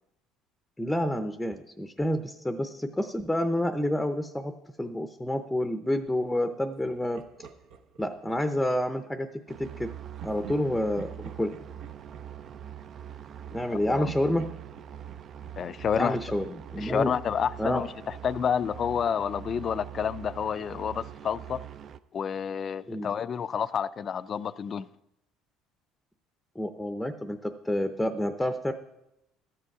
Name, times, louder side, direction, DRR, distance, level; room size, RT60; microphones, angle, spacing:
voice 1, 0.8-4.5 4.8-7.2 8.0-9.9 10.2-11.6 13.5-14.5 16.0-17.1 17.6-17.8 22.9-23.1 26.6-28.7, left 1 dB, 5° left, 0.6 m, -29 dB
Laughter, 6.8-9.0 10.2-13.7 14.0-16.8, right 7 dB, 70° right, 1.0 m, -49 dB
sound 1, 9.5-22.0, right 10 dB, 50° right, 0.4 m, -43 dB
voice 2, 15.6-16.2 16.8-21.6 22.1-24.9, left 7 dB, 40° left, 0.4 m, -29 dB
13.0 x 7.7 x 4.7 m
supercardioid pair, 100°, 0 cm